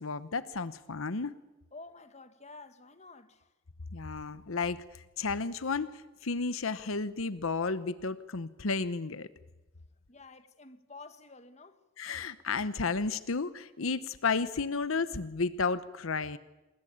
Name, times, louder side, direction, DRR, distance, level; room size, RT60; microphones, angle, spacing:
voice 1, 0.0-1.4 3.9-9.3 12.0-16.4, left 4 dB, 85° left, 0.9 m, -32 dB
voice 2, 1.7-3.5 10.1-11.8, left 3 dB, 30° left, 1.6 m, -50 dB
27.5 x 20.5 x 8.8 m
head